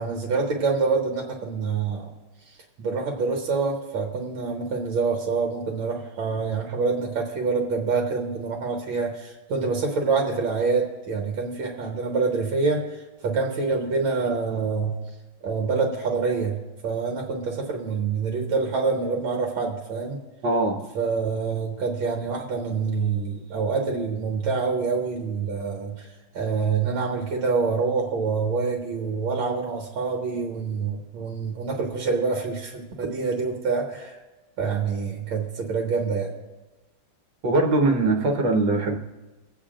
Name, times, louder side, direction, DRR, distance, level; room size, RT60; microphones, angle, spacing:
voice 1, 0.0-2.1 2.5-15.0 15.4-16.6 16.8-20.2 21.0-26.1 26.3-34.2 34.6-36.3, right 4 dB, 80° right, 0 dB, 1.9 m, -26 dB
voice 2, 20.4-20.8 37.4-39.0, right 2 dB, 65° right, 2 dB, 1.8 m, -21 dB
24.5 x 8.5 x 2.5 m, 1.1 s
omnidirectional pair, 2.2 m